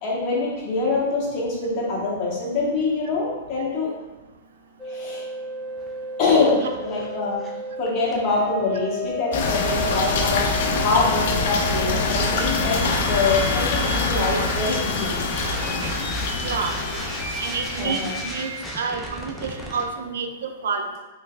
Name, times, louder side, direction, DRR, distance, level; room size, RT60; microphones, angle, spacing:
voice 1, 0.0-3.9 4.9-5.2 6.2-7.4 7.8-10.4 10.8-12.8 13.0-15.2 17.8-18.1, left 3 dB, 40° left, -5 dB, 1.2 m, -24 dB
sound 1, 4.8-19.9, left 1 dB, ahead, 0.5 m, -33 dB
sound 2, 9.3-18.5, left 3 dB, 60° left, 0.4 m, -25 dB
voice 2, 16.4-16.7 17.4-18.5 18.8-21.0, right 5 dB, 80° right, 5 dB, 0.4 m, -28 dB
3.2 x 3.1 x 2.4 m, 1.1 s
hypercardioid pair, 130°, 0 cm